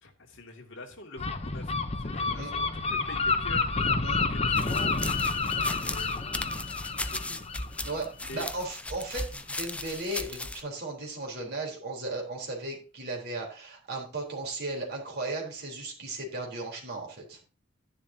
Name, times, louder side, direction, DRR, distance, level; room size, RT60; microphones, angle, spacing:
voice 1, 0.0-1.7 2.0-4.9 5.5-6.2 7.1-7.4 8.2-8.5, left 2 dB, 55° left, 1 dB, 2.5 m, -45 dB
Gull seagull, 1.2-8.7, left 3 dB, 30° left, 0.9 m, -29 dB
sound 1, 4.6-10.6, left 2 dB, 5° left, 0.4 m, -37 dB
voice 2, 7.8-17.4, right 2 dB, 50° right, -1 dB, 3.9 m, -36 dB
11.0 x 10.5 x 2.9 m, 0.34 s
head